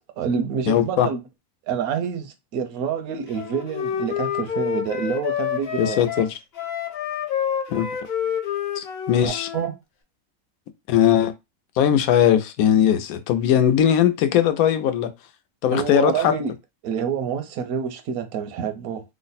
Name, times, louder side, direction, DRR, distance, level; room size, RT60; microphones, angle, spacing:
voice 1, 0.2-1.2 1.7-6.2 9.2-9.7 15.7-16.5 16.8-19.0, right 7 dB, 85° right, 1.1 m, -27 dB
voice 2, 0.7-1.1 5.8-6.3 7.7-7.9 8.8-9.5 10.9-11.3 11.8-15.1 15.6-16.3, left 10 dB, 85° left, 1.0 m, -19 dB
Wind instrument woodwind instrument, 3.3-9.7, left 9 dB, 55° left, 0.7 m, -28 dB
3.2 x 2.0 x 4.0 m
omnidirectional pair, 1.5 m